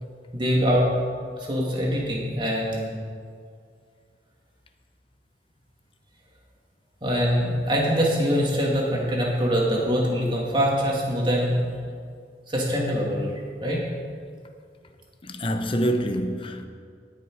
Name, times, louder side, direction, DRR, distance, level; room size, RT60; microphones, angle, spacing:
voice 1, 0.3-0.9 1.4-2.9 7.0-11.6 12.5-13.3 13.6-13.8, equal, 25° right, 2.2 m, -23 dB
voice 2, 15.2-16.7, equal, 30° left, 0.7 m, -26 dB
18.5 x 6.4 x 4.7 m
head